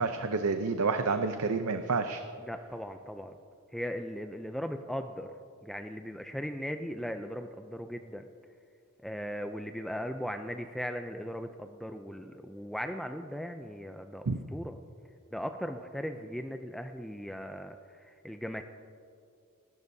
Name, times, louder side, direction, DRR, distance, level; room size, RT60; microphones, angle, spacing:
voice 1, 0.0-2.2 14.3-14.4, right 4 dB, 80° right, 7 dB, 0.6 m, -29 dB
voice 2, 2.4-3.3 3.7-5.3 5.6-8.2 9.0-14.7 15.3-18.6, equal, ahead, 6 dB, 0.4 m, -38 dB
26.5 x 12.0 x 2.7 m, 2.4 s
head